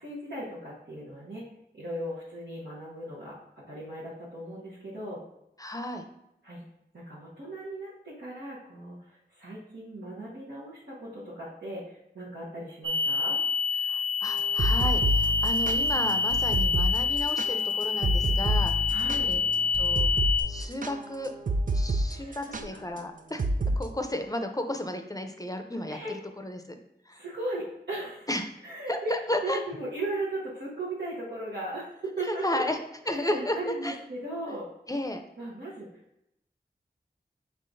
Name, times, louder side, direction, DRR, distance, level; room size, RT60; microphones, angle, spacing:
voice 1, 0.0-1.5 1.7-3.4 3.7-5.2 6.4-6.6 6.9-13.4 18.9-19.3 22.1-22.8 25.9-26.1 27.1-28.3 28.6-29.1 29.4-32.6 33.1-34.7 35.4-35.9, right 1 dB, 85° right, -9 dB, 1.0 m, -37 dB
voice 2, 5.6-6.0 13.8-19.0 19.3-19.4 19.7-20.1 20.5-21.3 21.7-23.4 23.8-26.0 26.4-26.8 27.1-27.2 28.3-28.4 28.9-29.6 32.2-32.8 33.1-33.9 34.9-35.2, left 1 dB, 20° left, 5 dB, 0.5 m, -33 dB
sound 1, 12.8-20.4, left 5 dB, 30° right, 0.7 m, -27 dB
sound 2, 14.4-22.1 22.3-22.6 23.4-23.8, right 1 dB, 50° right, 0.4 m, -28 dB
5.7 x 3.5 x 2.6 m, 0.82 s
wide cardioid pair, 40°, 18 cm